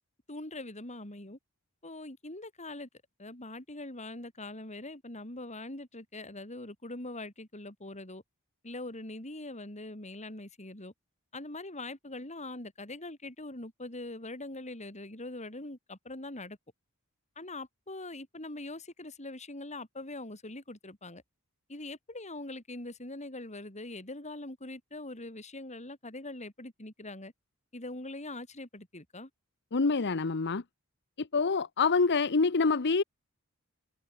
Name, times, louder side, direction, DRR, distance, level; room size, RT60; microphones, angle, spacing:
voice 1, 0.3-1.4 1.8-2.9 3.2-8.2 8.6-10.9 11.3-16.6 17.4-21.2 21.7-27.3 27.7-29.3, left 2 dB, 30° left, 6.0 m, -42 dB
voice 2, 29.7-30.6 31.2-33.0, left 4 dB, 50° left, 0.9 m, -26 dB
open air
head